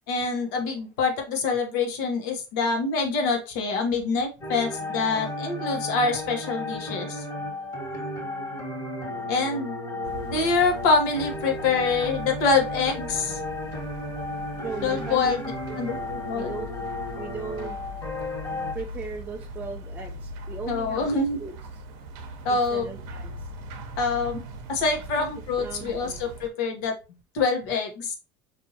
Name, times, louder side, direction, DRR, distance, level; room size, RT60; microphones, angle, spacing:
voice 1, 0.1-7.3 9.3-9.8 10.2-13.4 14.8-15.5 15.8-16.5 20.7-21.4 22.4-22.9 24.0-24.4 24.7-26.9 27.3-28.2, left 4 dB, 80° left, 3 dB, 1.0 m, -25 dB
sound 1, 4.4-18.7, left 2 dB, 30° left, 1.5 m, -34 dB
sound 2, 10.0-26.5, equal, 70° right, 0.7 m, -41 dB
voice 2, 14.6-15.4 15.7-15.8 16.3-16.7 17.1-17.8 18.7-21.1 21.4-21.5 22.5-23.5 25.1-25.3 25.6-26.2, right 5 dB, 15° right, 0 dB, 0.4 m, -37 dB
4.2 x 2.6 x 2.7 m, 0.30 s
supercardioid pair, 125°, 10 cm